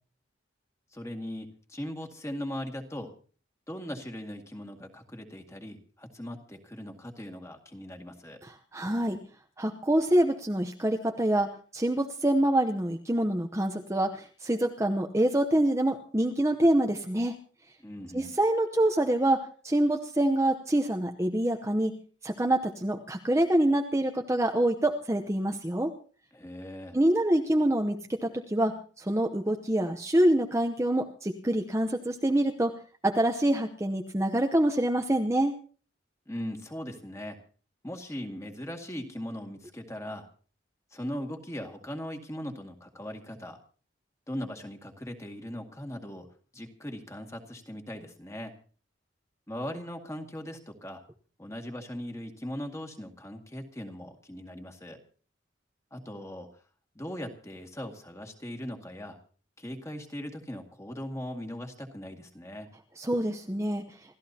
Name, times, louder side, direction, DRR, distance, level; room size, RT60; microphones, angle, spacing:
voice 1, 0.9-3.1 3.7-8.4 17.8-18.4 26.3-27.0 36.3-37.4 37.8-40.3 40.9-43.6 44.3-46.3 46.5-48.5 49.5-51.0 51.4-55.0 55.9-56.6 56.9-59.2 59.6-62.7, equal, 15° left, 4 dB, 2.0 m, -39 dB
voice 2, 8.4-9.2 9.6-17.4 18.1-25.9 26.9-32.7 33.0-35.5 63.0-63.8, right 1 dB, 15° right, 3 dB, 0.8 m, -26 dB
28.5 x 14.0 x 2.8 m, 0.40 s
head